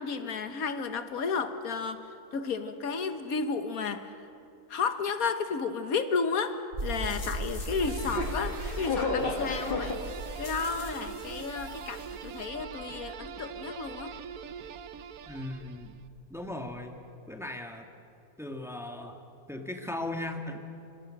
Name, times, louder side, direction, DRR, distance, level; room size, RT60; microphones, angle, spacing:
voice 1, 0.0-2.0 2.3-4.0 4.7-10.0 10.4-14.1, left 5 dB, 85° left, 9 dB, 1.7 m, -32 dB
sound 1, 6.7-16.8, right 1 dB, 65° right, 3.0 m, -40 dB
sound 2, 6.9-11.7 11.9-12.0, left 3 dB, 40° left, 2.1 m, -35 dB
sound 3, 7.7-16.1, right 8 dB, 85° right, 1.3 m, -43 dB
voice 2, 15.3-15.9 16.3-17.0 17.3-17.9 18.4-19.2 19.5-20.6, left 1 dB, ahead, 4 dB, 1.7 m, -37 dB
26.0 x 25.5 x 6.5 m, 2.6 s
omnidirectional pair, 1.5 m